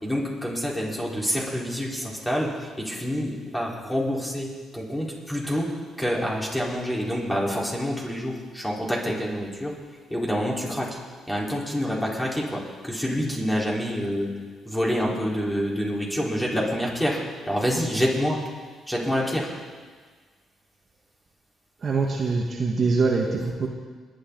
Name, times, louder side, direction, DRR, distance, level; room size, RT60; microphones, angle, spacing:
voice 1, 0.0-5.7 6.0-9.7 10.1-11.0 11.3-14.3 14.7-17.2 17.5-18.4 18.9-19.5, equal, 10° left, -4 dB, 4.5 m, -27 dB
voice 2, 21.8-23.7, right 4 dB, 45° right, 0 dB, 1.8 m, -24 dB
21.5 x 10.0 x 4.1 m, 1.5 s
supercardioid pair, 60°, 0 cm